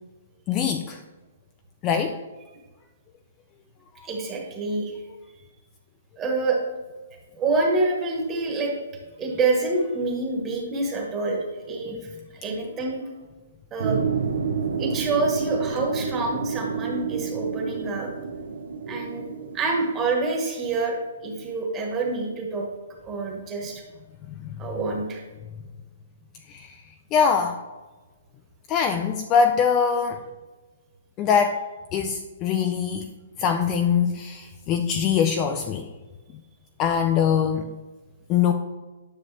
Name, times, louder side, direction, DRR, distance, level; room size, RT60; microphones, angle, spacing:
voice 1, 0.5-1.0 1.8-2.2 4.0-4.1 11.9-12.0 24.3-24.6 26.5-26.8 27.1-27.6 28.7-30.2 31.2-31.6 31.9-33.1 33.4-35.9 36.8-37.7 38.3-38.5, left 7 dB, 20° left, 5 dB, 0.3 m, -23 dB
voice 2, 4.0-4.9 6.2-6.6 7.3-8.7 9.2-12.0 12.4-13.0 13.7-14.0 14.8-18.1 18.9-22.7 23.0-23.8 24.6-25.2, right 3 dB, 15° right, -1 dB, 1.3 m, -27 dB
sound 1, 13.8-20.1, right 6 dB, 75° right, 1.0 m, -29 dB
9.8 x 6.7 x 3.3 m, 1.2 s
hypercardioid pair, 175°, 0 cm